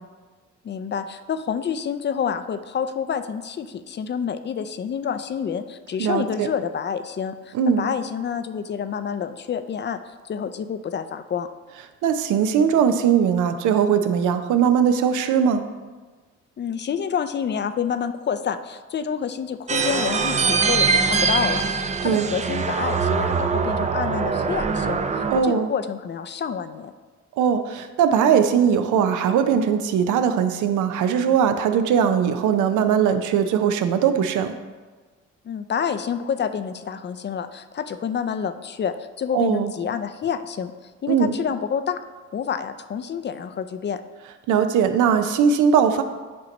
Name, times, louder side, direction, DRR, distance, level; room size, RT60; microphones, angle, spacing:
voice 1, 0.6-10.0 10.2-11.5 16.6-25.0 25.3-26.9 35.4-40.7 41.0-42.0 42.3-44.0, left 7 dB, 35° left, 11 dB, 0.4 m, -28 dB
voice 2, 6.0-6.5 7.5-7.8 12.0-15.6 22.0-22.3 25.3-25.7 27.4-34.5 39.3-39.7 41.1-41.3 44.5-46.0, right 7 dB, 80° right, 8 dB, 0.6 m, -20 dB
sound 1, 19.7-25.4, right 5 dB, 25° right, 0.5 m, -23 dB
8.5 x 3.0 x 5.2 m, 1.3 s
cardioid pair, 90°, 30 cm